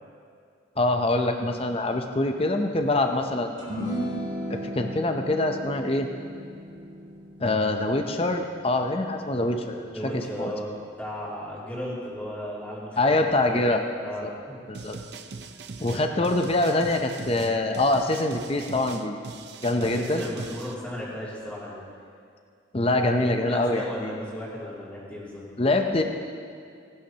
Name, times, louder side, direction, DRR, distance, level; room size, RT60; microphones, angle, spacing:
voice 1, 0.8-3.9 4.5-6.1 7.4-9.9 10.1-10.5 13.0-13.8 14.2-14.3 14.7-15.0 15.8-19.2 19.6-20.2 22.7-24.1 25.6-26.0, left 2 dB, 30° left, 4 dB, 0.6 m, -24 dB
sound 1, 3.6-10.1, equal, 30° right, 3.1 m, -36 dB
voice 2, 9.9-10.7 11.0-13.7 14.0-14.6 15.8-16.3 19.8-21.8 22.7-23.1 23.4-25.4, equal, 10° left, -8 dB, 2.8 m, -36 dB
sound 2, 14.7-20.7, right 4 dB, 55° right, 0.6 m, -40 dB
19.0 x 11.5 x 2.9 m, 2.3 s
head